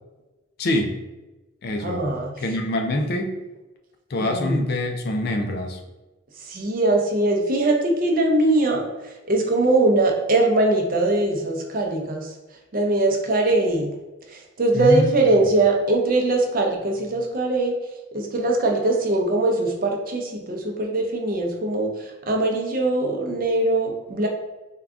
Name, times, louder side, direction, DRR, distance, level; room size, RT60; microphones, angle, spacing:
voice 1, 0.6-0.9 1.6-2.1 2.4-3.4 4.1-5.8 14.7-15.3, left 1 dB, 55° left, 4 dB, 0.4 m, -25 dB
voice 2, 1.8-2.3 4.2-4.6 6.5-8.8 9.3-12.3 12.7-14.0 14.3-17.7 18.1-24.3, right 2 dB, 50° right, 1 dB, 0.6 m, -21 dB
3.6 x 2.3 x 3.5 m, 1.1 s
head